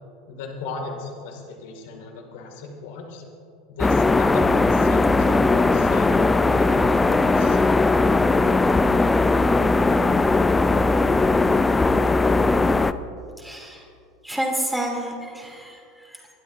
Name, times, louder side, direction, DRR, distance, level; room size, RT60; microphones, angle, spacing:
voice 1, 0.3-3.2 3.7-7.6, left 3 dB, 60° left, 3 dB, 2.3 m, -36 dB
sound 1, 3.8-12.9, left 3 dB, 15° left, 0.5 m, -19 dB
voice 2, 13.4-13.9 14.2-16.3, right 1 dB, 5° right, -1 dB, 2.9 m, -30 dB
26.0 x 12.0 x 2.7 m, 2.4 s
figure-of-eight pair, 75°, 0 cm